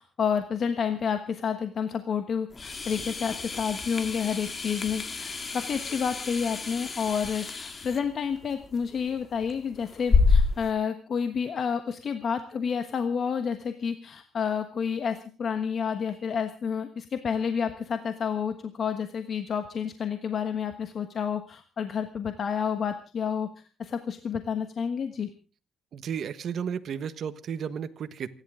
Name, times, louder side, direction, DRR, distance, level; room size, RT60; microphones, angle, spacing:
voice 1, 0.0-23.5 23.8-25.3, left 7 dB, 55° left, 8 dB, 1.3 m, -30 dB
sound 1, 2.5-10.7, left 4 dB, 35° left, 2.0 m, -29 dB
voice 2, 25.9-28.3, right 7 dB, 65° right, 11 dB, 1.3 m, -33 dB
28.0 x 11.5 x 3.7 m, 0.37 s
cardioid pair, 90°, 0 cm